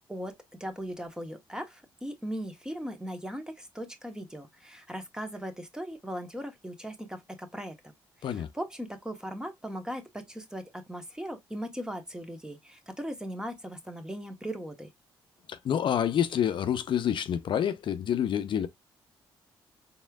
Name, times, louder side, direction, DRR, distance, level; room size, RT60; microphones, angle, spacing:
voice 1, 0.6-7.7 8.2-14.9, equal, 10° right, 1.1 m, -38 dB
voice 2, 15.5-18.7, left 9 dB, 60° left, 0.5 m, -28 dB
4.2 x 3.5 x 2.3 m
cardioid pair, 75°, 9 cm